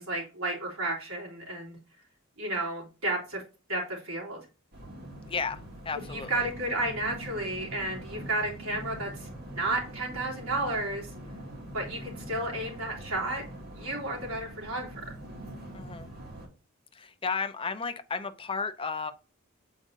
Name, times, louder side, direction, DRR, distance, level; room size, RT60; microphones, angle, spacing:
voice 1, 0.0-1.8 2.4-3.4 3.7-4.4 6.1-9.3 9.5-11.1 11.7-13.4 13.7-15.0, right 2 dB, 85° right, 3.5 m, -32 dB
sound 1, 4.7-16.5, right 1 dB, 45° right, 2.4 m, -43 dB
voice 2, 5.2-6.5 15.7-16.1 16.9-19.1, left 5 dB, 25° left, 0.6 m, -34 dB
7.7 x 5.1 x 2.6 m
head